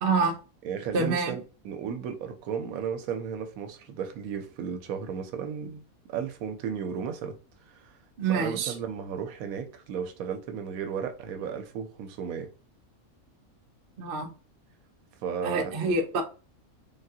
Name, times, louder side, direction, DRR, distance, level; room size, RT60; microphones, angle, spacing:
voice 1, 0.0-0.4 0.9-1.3 8.2-8.7 14.0-14.3 15.4-16.2, right 3 dB, 55° right, 0.6 m, -26 dB
voice 2, 0.6-5.8 6.1-7.4 7.7-8.0 8.3-12.5 15.2-15.7, right 7 dB, 75° right, 1.0 m, -34 dB
3.5 x 2.3 x 2.7 m
omnidirectional pair, 1.5 m